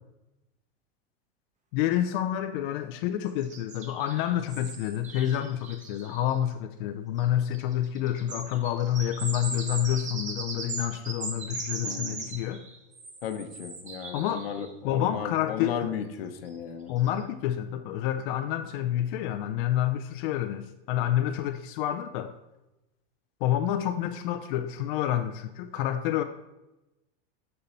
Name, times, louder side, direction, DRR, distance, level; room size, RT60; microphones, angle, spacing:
voice 1, 1.7-12.6 14.1-14.5 14.8-15.9 16.9-22.3 23.4-26.2, left 11 dB, 60° left, 7 dB, 0.5 m, -28 dB
sound 1, 3.4-6.3 7.2-7.3 7.5-14.7 16.5-16.6 17.0-17.2, right 3 dB, 25° right, 1.0 m, -39 dB
voice 2, 11.8-12.3 13.2-16.9, left 7 dB, 90° left, 7 dB, 0.9 m, -35 dB
6.7 x 5.4 x 4.2 m, 0.98 s
supercardioid pair, 130°, 29 cm